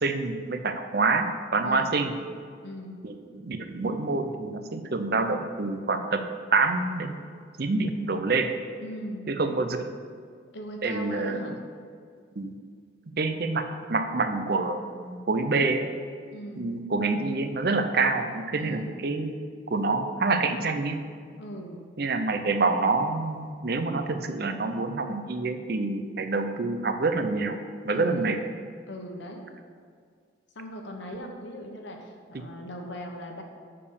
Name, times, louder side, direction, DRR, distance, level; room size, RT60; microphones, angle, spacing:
voice 1, 0.0-2.1 3.0-6.2 6.5-7.2 7.6-8.5 9.3-9.9 10.8-11.6 12.4-12.5 13.2-15.9 16.6-19.4 19.7-21.0 22.0-27.6 27.8-28.4 32.3-32.5, right 3 dB, 50° right, 7 dB, 0.6 m, -27 dB
voice 2, 1.6-2.0 2.6-3.0 8.8-9.3 10.5-11.6 16.3-16.7 18.6-18.9 21.4-21.9 27.9-28.3 28.9-29.4 30.5-33.4, equal, 70° left, 2 dB, 1.2 m, -39 dB
6.8 x 5.3 x 6.8 m, 2.1 s
head